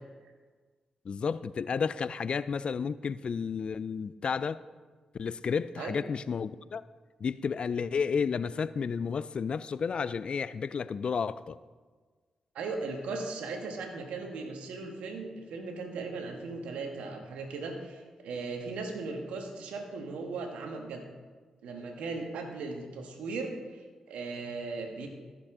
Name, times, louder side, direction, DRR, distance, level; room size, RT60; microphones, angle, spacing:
voice 1, 1.1-4.6 5.2-6.8 7.2-11.6, left 6 dB, 55° left, 0.4 m, -32 dB
voice 2, 12.5-21.0 21.6-23.8 24.1-25.1, right 3 dB, 80° right, 1.4 m, -37 dB
14.5 x 6.7 x 3.7 m
hypercardioid pair, 40°, 2 cm